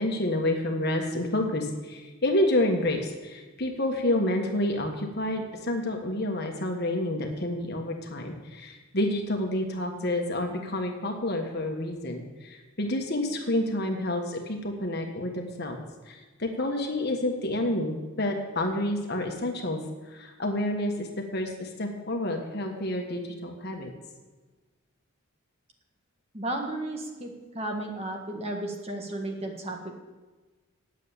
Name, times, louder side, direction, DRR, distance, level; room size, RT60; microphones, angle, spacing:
voice 1, 0.0-15.8 16.1-19.8 20.1-23.9, left 1 dB, 50° left, 3 dB, 1.5 m, -29 dB
voice 2, 26.3-29.9, right 1 dB, 30° right, 2 dB, 1.5 m, -34 dB
9.3 x 7.4 x 8.7 m, 1.3 s
head